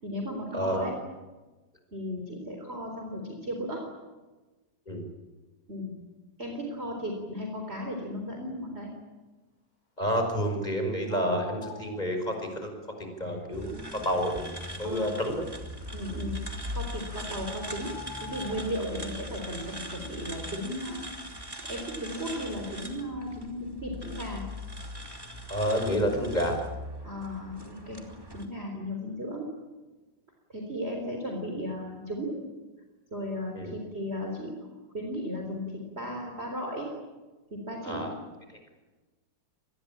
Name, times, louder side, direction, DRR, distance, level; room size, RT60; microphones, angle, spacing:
voice 1, 0.0-0.9 1.9-3.9 5.7-5.9 6.4-8.9 13.2-13.4 14.8-15.1 15.9-16.3 16.7-21.0 21.7-24.4 27.0-28.0 28.3-29.4 30.5-32.3 33.1-34.6 34.9-36.9 37.5-38.1, equal, 30° right, 1 dB, 4.2 m, -35 dB
voice 2, 0.5-0.9 4.9-5.1 10.0-12.7 13.0-13.7 14.0-14.5 14.8-15.4 25.5-26.6 33.5-33.8 37.8-38.1, equal, 20° left, 4 dB, 5.7 m, -29 dB
sound 1, 11.1-12.0 16.6-16.7 17.4-18.7, left 4 dB, 50° left, 7.6 m, -44 dB
sound 2, 13.5-28.4, left 1 dB, 10° right, 2.9 m, -40 dB
27.0 x 21.0 x 8.8 m, 1.2 s
omnidirectional pair, 2.1 m